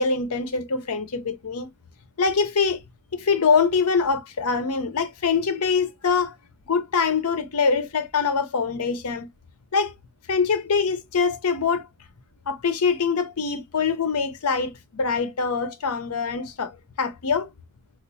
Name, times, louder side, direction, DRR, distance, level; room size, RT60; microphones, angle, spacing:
voice 1, 0.0-1.7 2.2-2.8 3.2-6.3 6.7-9.3 9.7-9.9 10.3-11.9 12.5-17.5, left 5 dB, 80° left, 0.7 m, -24 dB
4.3 x 2.4 x 2.6 m
head